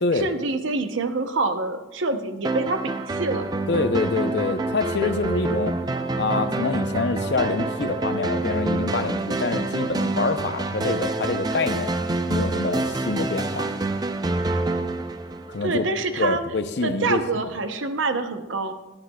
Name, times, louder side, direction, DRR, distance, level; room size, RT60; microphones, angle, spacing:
voice 1, 0.1-3.5 15.6-16.4 16.8-18.7, right 3 dB, 70° right, 8 dB, 0.7 m, -26 dB
sound 1, 2.4-16.0, right 2 dB, 20° right, 0.4 m, -27 dB
voice 2, 3.7-5.8 6.1-12.0 12.3-13.7 15.5-15.9 16.2-17.4, left 3 dB, 55° left, 9 dB, 0.6 m, -26 dB
16.0 x 9.8 x 2.3 m, 1.1 s
head